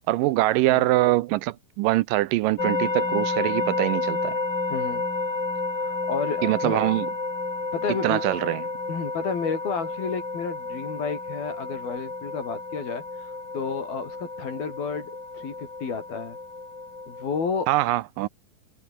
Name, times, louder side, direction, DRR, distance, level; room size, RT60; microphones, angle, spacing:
voice 1, 0.1-4.4 6.4-7.1 8.0-8.6 17.7-18.3, right 17 dB, 80° right, 2.1 m, -23 dB
sound 1, 2.6-17.6, left 3 dB, 30° left, 6.1 m, -31 dB
voice 2, 4.7-5.0 5.8-6.8 7.7-8.2 8.9-16.4 17.1-17.7, left 5 dB, 80° left, 7.1 m, -31 dB
omnidirectional pair, 4.2 m